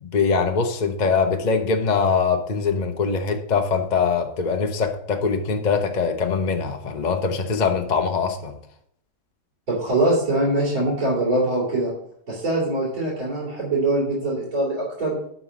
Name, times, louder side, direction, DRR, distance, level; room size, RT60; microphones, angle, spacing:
voice 1, 0.0-8.6, left 5 dB, 45° left, 5 dB, 0.6 m, -22 dB
voice 2, 9.7-11.9 12.3-15.1, right 2 dB, 55° right, -8 dB, 3.5 m, -23 dB
11.5 x 4.1 x 6.2 m, 0.70 s
omnidirectional pair, 1.8 m